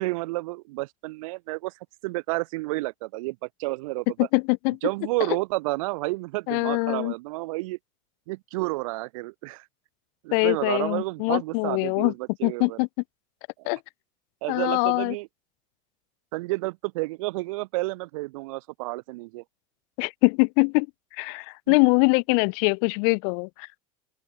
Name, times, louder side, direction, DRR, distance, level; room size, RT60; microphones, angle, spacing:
voice 1, 0.0-1.7 2.0-4.3 4.8-7.8 8.3-9.6 10.2-12.8 13.6-13.7 14.4-15.3 16.3-19.4 21.7-21.8, right 22 dB, 80° right, 3.1 m, -30 dB
voice 2, 4.2-4.8 6.5-7.1 10.3-12.1 12.4-12.9 13.6-13.8 14.5-15.1 20.0-20.9 21.2-23.8, left 40 dB or more, 65° left, 5.1 m, -23 dB
open air
supercardioid pair, 140°, 17 cm